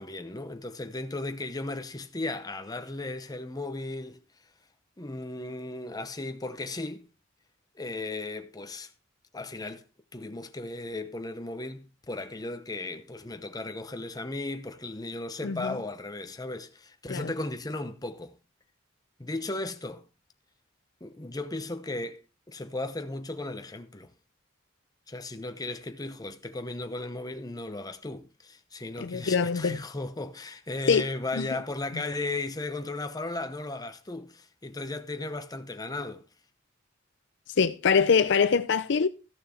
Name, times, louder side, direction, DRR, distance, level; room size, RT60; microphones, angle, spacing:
voice 1, 0.0-4.2 5.0-7.0 7.7-8.9 9.3-9.8 10.1-18.4 19.2-20.0 21.0-22.2 22.5-24.1 25.1-36.2, left 2 dB, 20° left, 0.9 m, -36 dB
voice 2, 15.4-15.8 17.1-17.3 29.0-29.8 30.9-31.1 31.3-31.5 31.9-32.0 37.6-39.1, left 5 dB, 60° left, 0.5 m, -24 dB
14.0 x 6.6 x 4.2 m
head